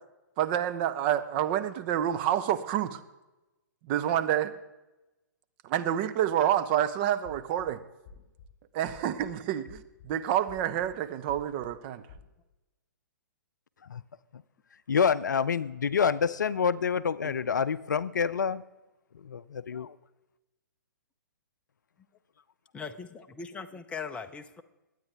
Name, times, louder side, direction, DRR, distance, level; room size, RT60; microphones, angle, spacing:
voice 1, 0.4-3.0 3.8-4.5 5.6-7.8 8.7-12.0, right 11 dB, 35° right, 10 dB, 0.8 m, -28 dB
sound 1, 7.2-7.7 8.0-8.5 8.9-9.3 9.7-10.1 10.5-10.9 11.3-11.7 12.1-12.3, left 5 dB, 35° left, 3.6 m, -50 dB
voice 2, 14.9-18.6 19.2-20.0, left 6 dB, 70° left, 16 dB, 0.5 m, -27 dB
voice 3, 22.7-24.6, left 5 dB, 10° left, 8 dB, 0.6 m, -40 dB
21.5 x 9.1 x 3.5 m, 1.0 s
figure-of-eight pair, 120°, 10 cm